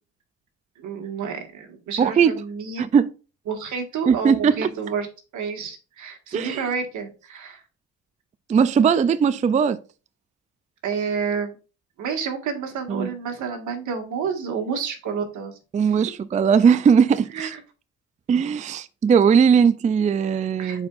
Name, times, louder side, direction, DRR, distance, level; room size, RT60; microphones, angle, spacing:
voice 1, 0.8-2.9 3.5-5.1 5.3-7.6 10.8-11.5 12.0-15.6 15.8-16.0 17.3-17.6 20.6-20.9, right 6 dB, 75° right, 1.8 m, -29 dB
voice 2, 2.0-2.3 2.8-3.1 4.1-4.7 6.3-6.6 8.5-9.8 12.9-13.1 15.7-17.5 18.3-20.9, right 6 dB, 25° right, 0.3 m, -19 dB
9.2 x 4.5 x 2.5 m
cardioid pair, 90°, 30 cm